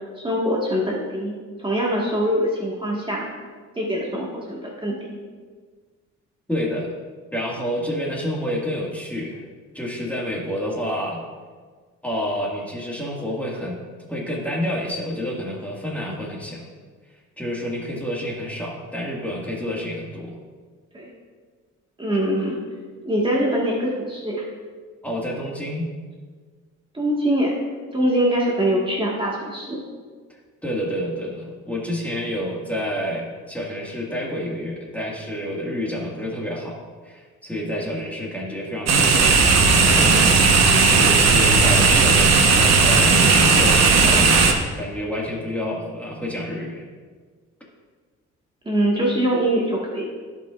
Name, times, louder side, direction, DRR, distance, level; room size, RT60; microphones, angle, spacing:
voice 1, 0.2-1.3 1.6-3.3 3.8-5.0 20.9-21.1 22.0-22.6 23.0-24.4 26.9-27.6 27.9-29.8 48.6-50.0, right 1 dB, 15° right, -4 dB, 1.6 m, -23 dB
voice 2, 6.5-6.9 7.3-9.4 9.7-11.2 12.0-13.8 14.1-16.7 17.4-20.4 25.0-25.9 30.6-40.2 40.9-46.9, equal, 5° left, -3 dB, 1.8 m, -29 dB
sound 1, 38.9-44.5, right 4 dB, 60° right, 1.1 m, -15 dB
15.5 x 5.5 x 2.5 m, 1.5 s
cardioid pair, 90°, 30 cm